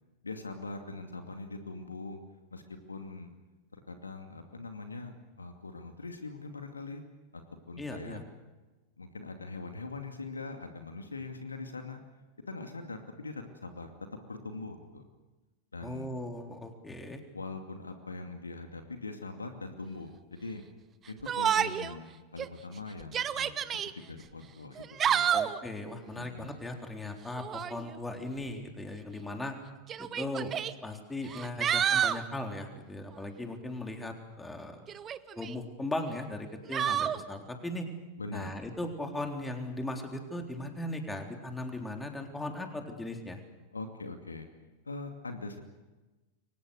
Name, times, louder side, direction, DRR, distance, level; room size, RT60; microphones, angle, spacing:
voice 1, 0.2-2.2 2.5-3.3 3.7-7.0 7.3-8.2 9.0-12.0 12.5-13.9 14.3-15.1 15.7-16.1 17.3-20.6 21.1-23.5 23.9-25.3 26.1-26.6 38.2-38.5 43.7-44.5 44.8-45.6, left 3 dB, 75° left, 6 dB, 2.4 m, -42 dB
voice 2, 7.8-8.2 15.8-17.2 25.3-29.6 30.0-30.5 30.8-34.9 35.4-37.9 38.3-43.4, left 1 dB, 10° left, 3 dB, 3.8 m, -38 dB
Yell, 21.3-21.9 22.4-22.5 23.0-23.9 24.8-25.6 27.3-27.8 28.9-29.0 29.9-30.7 31.3-32.2 34.9-35.5 36.7-37.2, right 9 dB, 25° right, 1.0 m, -29 dB
29.0 x 24.0 x 6.7 m, 1.2 s
figure-of-eight pair, 90°, 0 cm